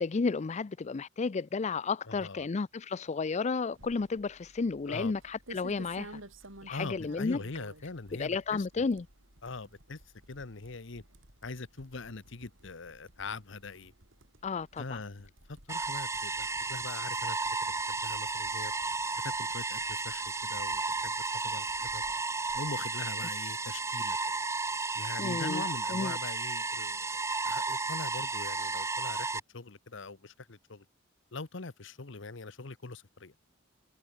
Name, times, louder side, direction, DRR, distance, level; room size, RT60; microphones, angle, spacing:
voice 1, 0.0-6.2 6.6-7.4 8.2-9.0 14.4-15.0 25.2-25.6 25.9-26.2, left 4 dB, 35° left, 0.4 m, -32 dB
voice 2, 2.1-2.5 4.9-5.1 6.7-8.8 9.4-10.0 10.3-11.0 11.4-13.9 14.8-18.7 19.2-22.0 22.5-24.2 24.9-27.1 27.4-30.8 31.3-33.3, left 3 dB, 70° left, 1.2 m, -42 dB
sound 1, 3.7-22.9, right 1 dB, 90° right, 7.7 m, -55 dB
sound 2, 15.7-29.4, right 3 dB, 15° right, 0.9 m, -33 dB
head